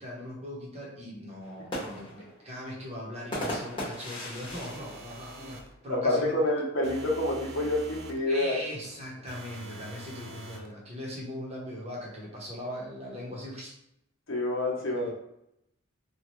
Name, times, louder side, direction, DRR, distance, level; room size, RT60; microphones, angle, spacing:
voice 1, 0.0-5.6 5.8-6.3 8.3-13.7 14.9-15.1, equal, 30° right, -4 dB, 0.9 m, -40 dB
sound 1, 1.4-6.1 6.5-6.6 6.8-7.3 8.2-9.7, equal, 25° left, 1.0 m, -39 dB
sound 2, 4.4-5.7 6.8-8.2 9.3-10.7, right 2 dB, 55° right, 0.4 m, -45 dB
voice 2, 6.0-8.6 14.3-15.1, left 1 dB, 65° left, -2 dB, 0.8 m, -28 dB
2.9 x 2.3 x 3.0 m, 0.78 s
head